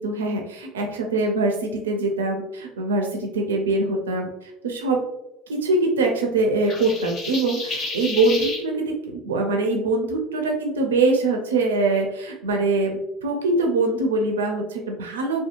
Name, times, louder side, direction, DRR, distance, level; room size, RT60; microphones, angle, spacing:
voice 1, 0.0-5.0 5.5-15.4, right 2 dB, 90° right, 2 dB, 0.4 m, -23 dB
sound 1, 6.7-8.6, left 2 dB, 50° left, 0.8 m, -31 dB
2.7 x 2.2 x 2.4 m, 0.88 s
hypercardioid pair, 75°, 0 cm